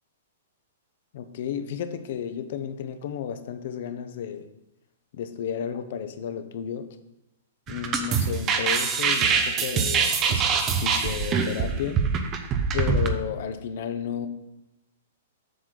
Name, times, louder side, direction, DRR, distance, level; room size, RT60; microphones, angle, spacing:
voice 1, 1.1-4.5 5.1-6.9 7.7-12.0 12.7-14.3, left 8 dB, 55° left, 9 dB, 0.8 m, -32 dB
sound 1, 7.7-13.1, right 5 dB, 25° right, 0.6 m, -24 dB
7.6 x 6.3 x 3.9 m, 0.91 s
hypercardioid pair, 155°, 0 cm